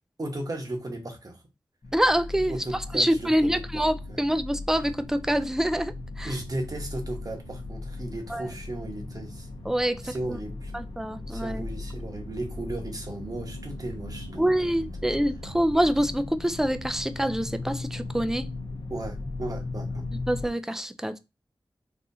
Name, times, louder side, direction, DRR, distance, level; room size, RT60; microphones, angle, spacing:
voice 1, 0.2-1.4 2.5-3.8 4.1-4.2 6.2-9.5 10.0-10.7 11.3-14.7 18.9-20.0, right 1 dB, 45° right, 1.0 m, -35 dB
sound 1, 1.8-20.5, left 2 dB, 60° left, 0.7 m, -38 dB
voice 2, 1.9-6.4 8.3-8.5 9.6-10.4 10.7-11.6 14.4-18.5 20.3-21.2, equal, 5° right, 0.4 m, -26 dB
4.1 x 2.4 x 2.7 m
wide cardioid pair, 60°, 9 cm